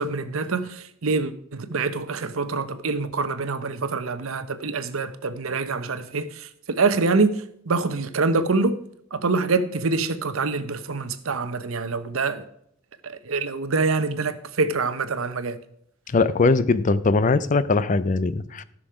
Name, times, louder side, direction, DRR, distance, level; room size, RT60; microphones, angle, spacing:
voice 1, 0.0-8.8 9.1-12.4 13.0-15.6, right 4 dB, 80° right, 0.8 m, -25 dB
voice 2, 16.1-18.6, left 3 dB, 35° left, 0.4 m, -21 dB
13.5 x 6.2 x 4.9 m
head